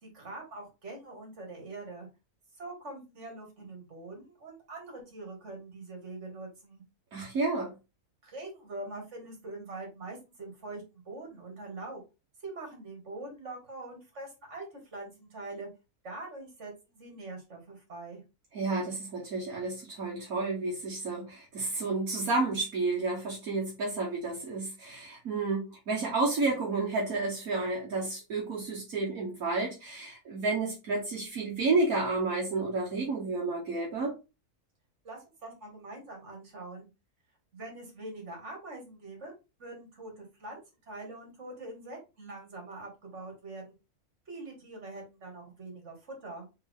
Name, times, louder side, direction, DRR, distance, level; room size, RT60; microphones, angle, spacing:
voice 1, 0.0-2.1 2.6-6.8 8.2-12.0 12.4-14.6 14.9-15.7 16.0-18.2 35.0-36.9 37.5-39.3 39.6-40.6 40.9-43.7 44.3-46.5, right 2 dB, 50° right, 2.1 m, -43 dB
voice 2, 7.1-7.7 18.5-34.1, right 3 dB, 70° right, 1.6 m, -31 dB
4.1 x 3.5 x 3.6 m
omnidirectional pair, 1.5 m